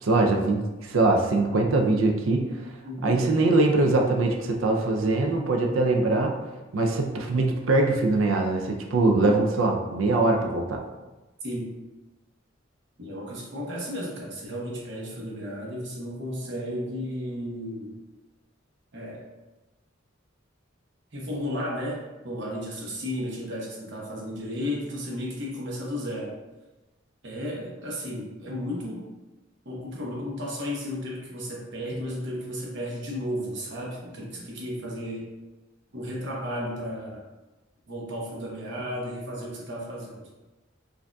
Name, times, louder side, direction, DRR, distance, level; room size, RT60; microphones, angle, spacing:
voice 1, 0.0-2.7 3.0-6.3 6.7-10.8, right 2 dB, 90° right, 2 dB, 0.5 m, -22 dB
voice 2, 2.8-3.2 11.4-11.7 13.0-18.0 18.9-19.2 21.1-26.3 27.2-29.1 29.6-35.3 35.9-37.2 37.9-40.3, equal, 60° right, -3 dB, 0.9 m, -33 dB
4.8 x 2.6 x 2.3 m, 1.1 s
head